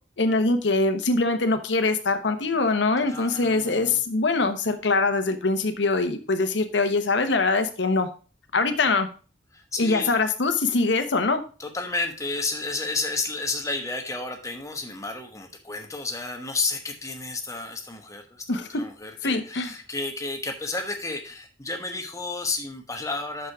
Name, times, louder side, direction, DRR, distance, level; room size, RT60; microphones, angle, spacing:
voice 1, 0.2-8.1 8.5-9.1 9.8-11.4 18.5-18.8 19.2-19.7, left 3 dB, 75° left, 8 dB, 1.0 m, -23 dB
voice 2, 3.0-4.0 9.5-10.2 11.6-23.5, left 3 dB, 15° left, 4 dB, 1.1 m, -32 dB
6.3 x 5.9 x 4.8 m, 0.36 s
head